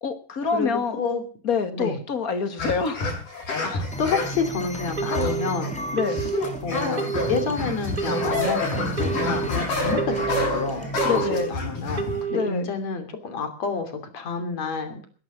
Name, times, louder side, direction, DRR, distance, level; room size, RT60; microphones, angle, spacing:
voice 1, 0.0-1.0 1.4-3.0 5.9-6.2 11.0-11.5 12.3-12.7, left 5 dB, 35° left, 9 dB, 1.5 m, -26 dB
voice 2, 0.5-1.2 1.7-2.0 3.6-5.8 6.6-15.0, left 4 dB, 55° left, 7 dB, 4.0 m, -29 dB
sound 1, 2.6-4.4 5.1-5.7 6.1-12.2, left 2 dB, 75° left, 8.5 m, -28 dB
sound 2, 3.9-11.2, right 2 dB, 5° left, 0.8 m, -34 dB
Telephone, 5.0-5.5 6.0-6.5 7.0-7.5 8.0-8.5 9.0-9.5 10.0-10.5 11.0-11.5 12.0-12.5, right 7 dB, 40° right, 1.4 m, -29 dB
20.0 x 10.5 x 6.2 m, 0.41 s
omnidirectional pair, 3.8 m